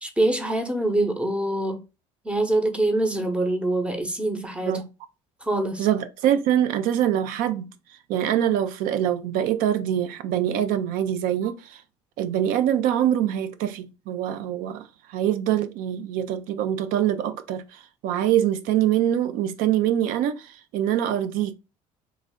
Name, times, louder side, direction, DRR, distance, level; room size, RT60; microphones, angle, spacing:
voice 1, 0.0-1.8 2.2-4.8 5.4-5.9, right 1 dB, 5° right, 0.8 m, -24 dB
voice 2, 5.8-7.7 8.1-11.8 12.2-21.5, right 11 dB, 70° right, 0.5 m, -24 dB
3.2 x 2.4 x 3.6 m
supercardioid pair, 80°, 15 cm